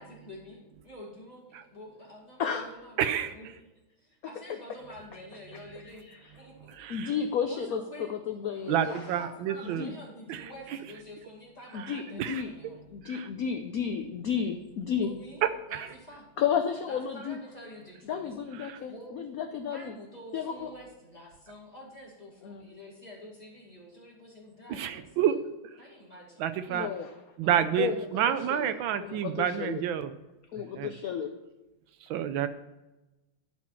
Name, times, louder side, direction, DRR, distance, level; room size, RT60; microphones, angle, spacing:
voice 1, 0.0-3.5 4.0-6.1 6.4-6.8 7.5-8.1 8.8-12.8 14.9-15.4 15.7-16.3 16.9-18.2 18.8-19.2 19.7-25.2 25.8-26.5 27.4-28.0, left 1 dB, 20° left, -3 dB, 2.1 m, -48 dB
voice 2, 3.0-3.3 6.8-7.1 8.7-9.9 10.3-10.4 12.2-12.4 13.1-13.3 18.6-18.8 24.7-25.4 26.4-26.9 27.4-30.1 30.8-30.9 32.1-32.5, right 9 dB, 80° right, 11 dB, 1.3 m, -29 dB
voice 3, 6.9-9.0 9.6-9.9 11.7-12.5 12.9-15.1 16.4-17.4 18.1-19.9 20.3-20.7 22.4-22.7 26.7-27.2 27.8-28.7 29.0-29.8 30.5-31.3, left 7 dB, 75° left, 6 dB, 0.8 m, -32 dB
11.5 x 4.5 x 5.6 m, 1.0 s
omnidirectional pair, 2.2 m